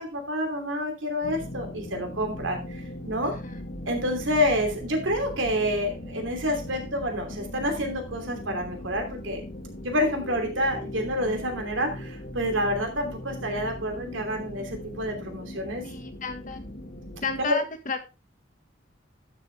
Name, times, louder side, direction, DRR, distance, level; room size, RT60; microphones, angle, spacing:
voice 1, 0.0-3.4 3.9-9.4 9.8-15.8 17.4-17.6, equal, 90° right, 4 dB, 2.9 m, -28 dB
sound 1, 1.2-17.4, left 1 dB, 60° left, 1.9 m, -39 dB
voice 2, 3.2-3.6 15.8-16.6 17.2-18.0, left 4 dB, 45° left, 7 dB, 1.5 m, -33 dB
12.0 x 6.7 x 3.4 m, 0.28 s
head